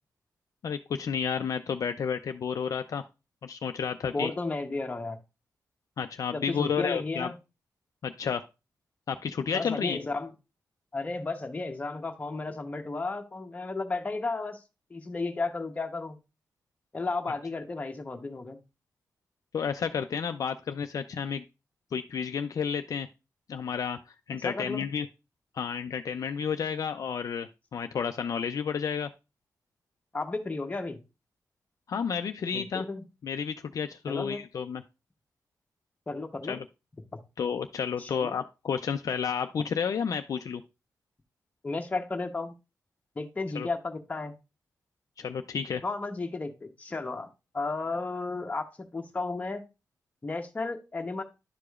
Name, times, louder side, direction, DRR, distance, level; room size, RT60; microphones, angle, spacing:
voice 1, 0.6-3.0 3.4-4.3 6.0-7.3 8.0-8.4 9.1-10.0 19.5-21.4 21.9-23.1 23.5-24.0 24.3-25.1 25.5-29.1 31.9-32.8 33.2-34.8 36.5-36.6 37.4-40.6 43.5-43.7 45.2-45.8, left 7 dB, 60° left, 7 dB, 0.4 m, -31 dB
voice 2, 4.1-5.2 6.3-7.3 9.5-10.3 10.9-14.6 14.9-16.2 16.9-18.6 24.3-24.8 30.1-31.0 32.5-33.0 34.1-34.4 36.1-36.6 37.1-37.2 38.0-38.4 41.6-42.5 43.2-44.3 45.8-47.3 47.5-49.6 50.2-51.2, left 3 dB, 20° left, 4 dB, 0.9 m, -33 dB
11.5 x 4.9 x 2.3 m, 0.27 s
wide cardioid pair, 170°, 7 cm